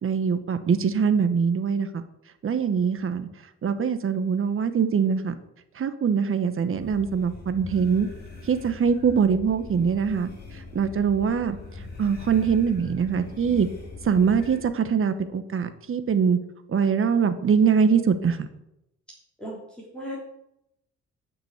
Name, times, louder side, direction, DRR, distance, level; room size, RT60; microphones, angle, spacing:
voice 1, 0.0-2.0 2.4-3.3 3.6-5.3 5.7-8.1 8.4-11.6 12.0-13.7 14.0-16.4 16.7-18.5, right 6 dB, 45° right, 10 dB, 1.2 m, -23 dB
sound 1, 6.8-14.6, left 3 dB, 35° left, 5.1 m, -41 dB
voice 2, 19.4-20.2, equal, 5° left, -5 dB, 3.2 m, -37 dB
9.3 x 6.1 x 8.1 m, 0.85 s
cardioid pair, 90°, 30 cm